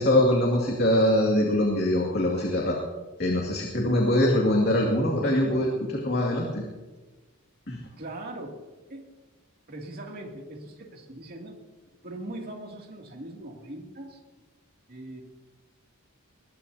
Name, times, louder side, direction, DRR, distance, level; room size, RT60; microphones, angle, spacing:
voice 1, 0.0-2.8 3.2-6.6 7.7-7.8, left 1 dB, 50° left, -1 dB, 2.3 m, -23 dB
voice 2, 8.0-8.6 8.9-9.0 9.7-11.6 12.0-14.2 14.9-15.2, right 1 dB, 45° right, 0 dB, 2.6 m, -40 dB
21.5 x 20.0 x 2.8 m, 1.2 s
head